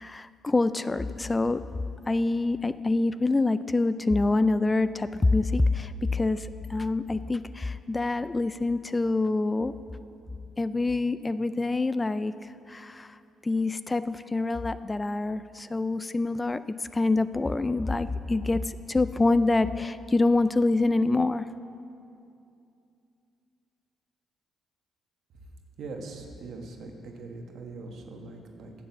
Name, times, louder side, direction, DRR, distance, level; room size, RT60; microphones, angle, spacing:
voice 1, 0.0-1.6 2.1-9.7 10.6-13.2 13.4-16.6 16.9-21.4, left 2 dB, 20° left, 14 dB, 0.3 m, -26 dB
voice 2, 25.8-28.7, right 3 dB, 70° right, 2 dB, 1.5 m, -41 dB
11.0 x 7.3 x 7.1 m, 2.6 s
cardioid pair, 90°, 0 cm